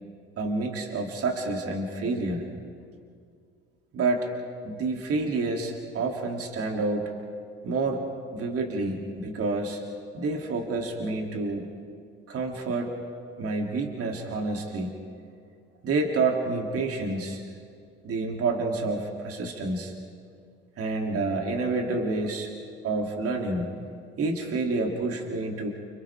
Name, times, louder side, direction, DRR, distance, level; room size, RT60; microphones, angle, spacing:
voice 1, 0.4-2.5 3.9-4.3 4.6-7.1 7.6-8.0 8.3-9.8 10.1-11.7 12.3-12.9 13.4-14.9 15.8-17.4 18.0-19.9 20.8-22.5 22.8-23.7 24.2-25.7, right 3 dB, 50° right, 1 dB, 3.1 m, -28 dB
29.5 x 28.0 x 3.7 m, 2.2 s
hypercardioid pair, 55°, 29 cm